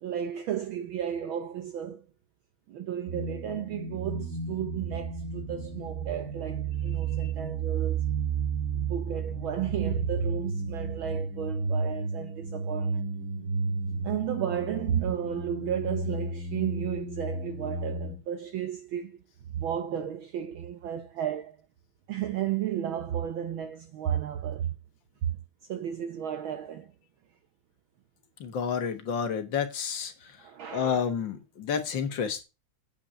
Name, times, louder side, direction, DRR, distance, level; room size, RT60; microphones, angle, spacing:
voice 1, 0.0-2.1 2.7-8.0 8.9-13.1 14.0-19.2 19.5-21.6 22.1-24.7 25.2-25.3 25.7-26.9 30.4-31.1, right 10 dB, 80° right, 1.1 m, -33 dB
sound 1, 3.1-18.2, right 4 dB, 35° right, 1.8 m, -32 dB
voice 2, 28.4-30.1 30.7-32.4, left 7 dB, 50° left, 1.5 m, -30 dB
8.6 x 5.7 x 7.4 m
omnidirectional pair, 3.3 m